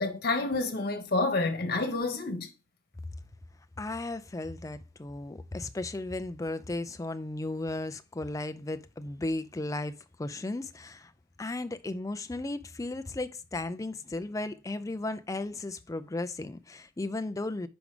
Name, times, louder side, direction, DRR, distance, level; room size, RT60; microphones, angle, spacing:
voice 1, 0.0-2.5, left 3 dB, 55° left, 1.2 m, -29 dB
voice 2, 3.8-11.1 11.4-17.7, left 2 dB, 15° left, 0.4 m, -35 dB
5.2 x 4.7 x 5.0 m
head